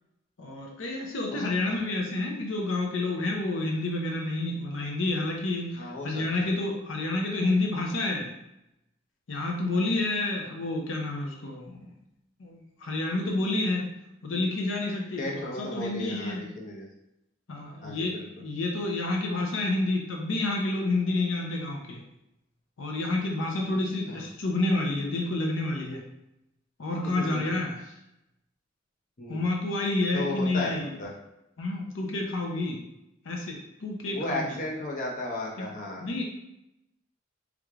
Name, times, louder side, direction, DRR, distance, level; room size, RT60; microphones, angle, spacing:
voice 1, 0.4-8.3 9.3-11.9 12.4-13.9 14.2-16.5 17.5-22.0 22.8-26.0 26.8-27.9 29.3-31.0 31.6-32.8 33.2-34.5 35.6-35.7 36.0-36.2, left 2 dB, 80° left, 0 dB, 0.6 m, -29 dB
voice 2, 1.3-1.8 5.8-6.5 15.2-16.9 17.8-18.3 24.1-24.2 27.0-27.5 29.2-29.4 30.1-31.1 34.1-36.0, left 1 dB, 40° left, -3 dB, 0.7 m, -35 dB
3.5 x 3.1 x 2.4 m, 0.86 s
head